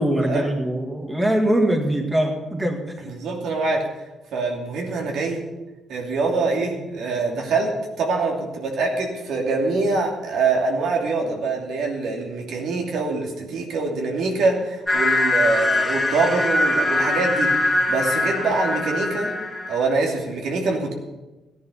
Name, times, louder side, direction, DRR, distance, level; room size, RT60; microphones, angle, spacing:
voice 1, 0.0-2.8, right 1 dB, 10° right, 3 dB, 1.9 m, -22 dB
voice 2, 3.0-3.8 4.3-5.4 5.9-7.7 8.0-19.3 19.7-20.9, right 3 dB, 80° right, 0 dB, 2.7 m, -24 dB
sound 1, 14.9-19.9, left 2 dB, 15° left, 2.6 m, -22 dB
15.0 x 10.0 x 5.6 m, 1.1 s
cardioid pair, 90°, 0 cm